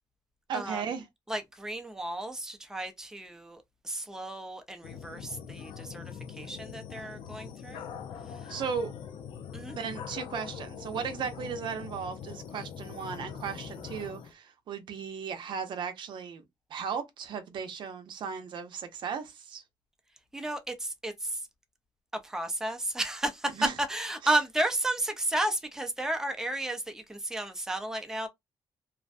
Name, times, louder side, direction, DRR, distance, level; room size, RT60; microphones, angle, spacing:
voice 1, 0.5-1.1 8.5-8.9 9.7-16.4 16.7-19.6 23.5-23.7 24.2-24.4, right 6 dB, 70° right, 0.6 m, -36 dB
voice 2, 1.3-7.9 8.4-8.5 9.5-9.8 20.3-21.4 22.2-23.5 23.8-28.3, right 1 dB, 5° right, 0.5 m, -33 dB
sound 1, 4.8-14.3, left 7 dB, 90° left, 0.4 m, -42 dB
2.5 x 2.1 x 2.4 m
cardioid pair, 100°, 8 cm